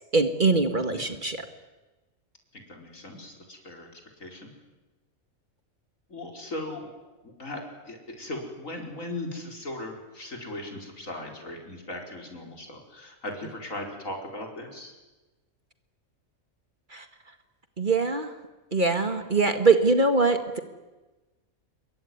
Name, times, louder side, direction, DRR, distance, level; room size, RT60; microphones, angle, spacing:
voice 1, 0.1-1.4 16.9-17.1 17.8-18.3 18.7-20.6, right 3 dB, 35° right, 7 dB, 1.9 m, -23 dB
voice 2, 2.5-4.5 6.1-6.9 7.2-7.6 7.9-14.9, left 1 dB, 70° left, 2 dB, 5.3 m, -38 dB
26.5 x 23.0 x 9.6 m, 1.1 s
omnidirectional pair, 1.4 m